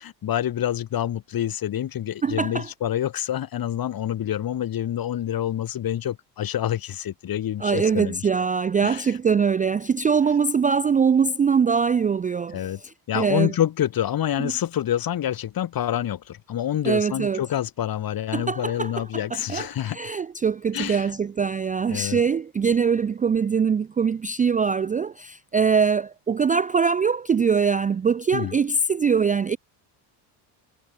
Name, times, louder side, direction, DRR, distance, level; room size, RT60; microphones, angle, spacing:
voice 1, 0.0-8.2 8.8-9.0 12.5-12.8 13.1-20.0 20.7-21.1 21.9-22.2 28.3-28.5, left 11 dB, 45° left, 1.9 m, -27 dB
voice 2, 2.2-2.7 7.6-13.5 14.4-14.5 16.8-17.4 18.3-29.6, right 6 dB, 20° right, 0.3 m, -23 dB
cardioid pair, 120°, 47 cm